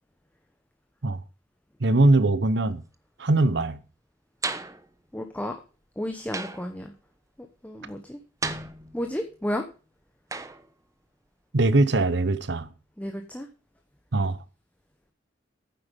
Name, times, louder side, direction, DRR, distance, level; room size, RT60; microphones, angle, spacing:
voice 1, 1.8-2.8 3.2-3.8 11.5-12.7 14.1-14.4, right 2 dB, 65° right, 0.9 m, -21 dB
sound 1, 4.4-4.9 6.3-6.8 8.4-9.2 10.3-10.7, right 3 dB, 20° right, 0.9 m, -33 dB
voice 2, 5.1-5.6 6.0-6.9 7.6-8.2 8.9-9.6 13.0-13.5, left 1 dB, 10° left, 1.0 m, -32 dB
9.6 x 7.8 x 5.2 m
head